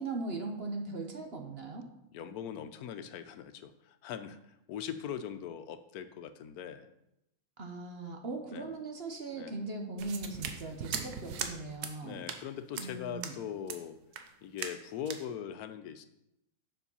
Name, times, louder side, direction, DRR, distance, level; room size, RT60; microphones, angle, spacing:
voice 1, 0.0-1.9 7.6-12.2 12.8-13.4, right 3 dB, 45° right, 4 dB, 1.1 m, -39 dB
voice 2, 2.1-6.9 8.5-8.7 9.3-9.6 12.0-14.0 14.4-16.1, left 8 dB, 80° left, 11 dB, 1.1 m, -41 dB
sound 1, 10.0-11.5 11.8-12.0 12.3-12.4 12.8-12.9 13.2-13.4 13.7-13.8 14.1-14.3 14.6-14.8 15.1-15.2, right 7 dB, 85° right, 1.3 m, -39 dB
7.2 x 6.1 x 5.5 m, 0.84 s
omnidirectional pair, 1.6 m